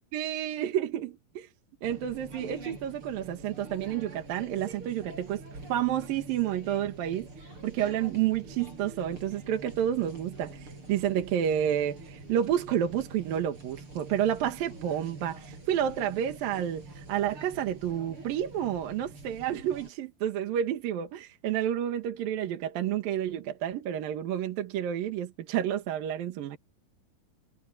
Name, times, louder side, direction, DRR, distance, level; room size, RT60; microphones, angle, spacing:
voice 1, 0.1-1.5 1.8-5.4 5.7-26.6, right 10 dB, 70° right, 3.3 m, -30 dB
sound 1, 1.8-19.9, right 2 dB, 35° right, 8.0 m, -46 dB
omnidirectional pair, 4.4 m